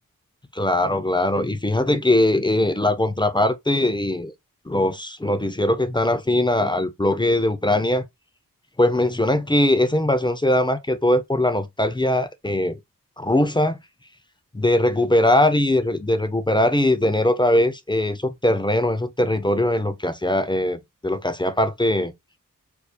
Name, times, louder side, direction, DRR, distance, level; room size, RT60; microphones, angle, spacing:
voice 1, 0.5-4.3 4.7-8.0 8.8-12.7 13.2-13.8 14.5-22.1, left 1 dB, 15° left, 0.5 m, -21 dB
4.6 x 2.6 x 2.2 m
wide cardioid pair, 85°, 34 cm